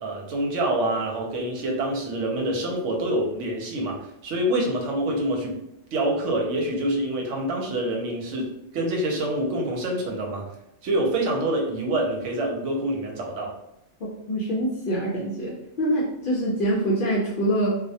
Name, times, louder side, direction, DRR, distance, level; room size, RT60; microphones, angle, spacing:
voice 1, 0.0-5.6 5.9-10.5 10.8-13.5, right 1 dB, 80° right, 0 dB, 0.9 m, -26 dB
voice 2, 14.3-17.8, right 1 dB, 60° left, -5 dB, 0.6 m, -25 dB
2.2 x 2.1 x 2.6 m, 0.82 s
omnidirectional pair, 1.3 m